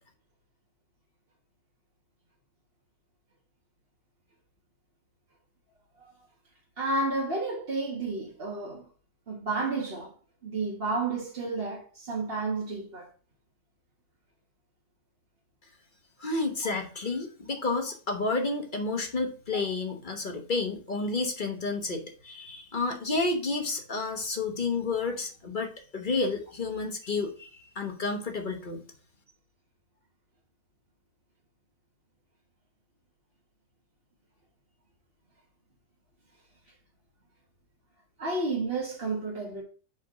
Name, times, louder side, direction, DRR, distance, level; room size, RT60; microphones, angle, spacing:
voice 1, 6.8-8.8 9.3-10.1 10.4-13.1 19.5-19.6 38.2-39.6, right 3 dB, 40° right, 1.5 m, -31 dB
voice 2, 16.2-28.8, left 3 dB, 35° left, 1.1 m, -31 dB
5.2 x 4.2 x 5.9 m
omnidirectional pair, 1.7 m